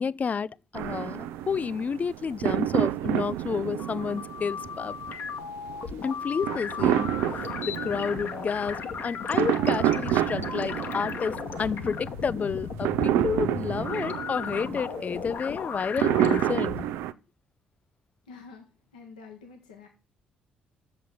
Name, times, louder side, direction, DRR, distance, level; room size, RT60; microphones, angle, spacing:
voice 1, 0.0-4.9 6.0-7.1 7.6-16.8, left 6 dB, 35° left, 0.4 m, -30 dB
sound 1, 0.7-17.1, right 12 dB, 70° right, 0.4 m, -29 dB
sound 2, 3.6-16.8, left 6 dB, 55° left, 1.1 m, -36 dB
voice 2, 18.2-19.9, left 5 dB, 85° left, 1.2 m, -48 dB
7.4 x 5.7 x 7.1 m
hypercardioid pair, 45°, 4 cm